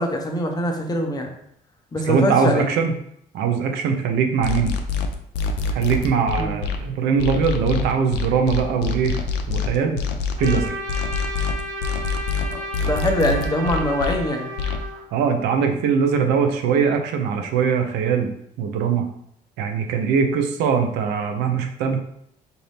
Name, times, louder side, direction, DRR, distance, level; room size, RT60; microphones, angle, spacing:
voice 1, 0.0-1.3 1.9-2.7 6.4-6.5 12.5-14.5, left 1 dB, 20° left, 3 dB, 0.8 m, -23 dB
voice 2, 2.0-2.9 3.3-4.7 5.7-9.2 9.5-10.0 10.4-10.7 15.1-18.3 18.6-19.1 19.6-22.0, right 6 dB, 85° right, 5 dB, 0.7 m, -21 dB
sound 1, 4.4-6.8 7.2-14.2 14.6-14.8, left 6 dB, 85° left, 0.5 m, -25 dB
Trumpet, 10.4-15.1, right 1 dB, 50° right, 1.2 m, -32 dB
4.4 x 2.7 x 3.4 m, 0.72 s
cardioid pair, 110°, 17 cm